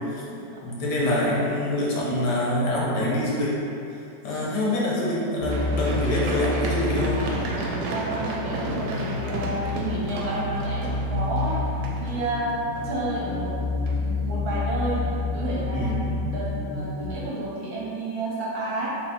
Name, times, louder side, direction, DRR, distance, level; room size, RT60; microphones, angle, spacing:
voice 1, 0.6-3.5 4.2-7.2 15.7-16.0, left 1 dB, 75° left, -5 dB, 1.4 m, -25 dB
sound 1, 5.4-17.1, left 3 dB, 55° left, 0.6 m, -29 dB
Run, 5.5-13.4 13.9-14.0, right 2 dB, 85° right, 1.2 m, -33 dB
voice 2, 7.9-13.6 13.9-18.9, right 2 dB, 65° right, -6 dB, 1.2 m, -31 dB
3.6 x 2.8 x 4.2 m, 2.7 s
omnidirectional pair, 1.9 m